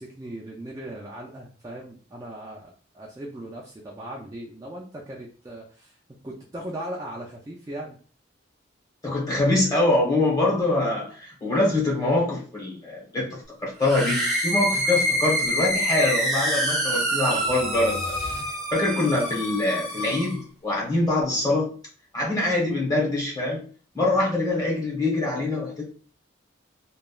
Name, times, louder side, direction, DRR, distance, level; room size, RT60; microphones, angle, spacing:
voice 1, 0.0-6.0 6.2-8.0, right 1 dB, 15° right, -3 dB, 0.3 m, -38 dB
voice 2, 9.0-18.2 18.7-21.7 22.1-23.6 23.9-25.8, left 2 dB, 20° left, -4 dB, 1.0 m, -24 dB
sound 1, 13.8-20.4, equal, ahead, 0.7 m, -26 dB
sound 2, 17.3-19.0, left 2 dB, 50° left, 0.5 m, -38 dB
2.9 x 2.2 x 2.3 m, 0.41 s
head